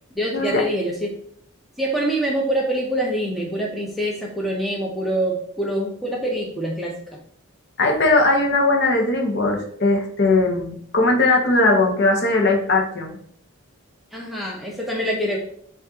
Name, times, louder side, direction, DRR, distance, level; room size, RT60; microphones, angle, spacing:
voice 1, 0.2-1.1 1.8-6.9 14.1-15.4, right 1 dB, ahead, -2 dB, 0.5 m, -25 dB
voice 2, 7.8-13.2, left 2 dB, 50° left, 1 dB, 0.8 m, -19 dB
6.9 x 2.4 x 2.8 m, 0.65 s
head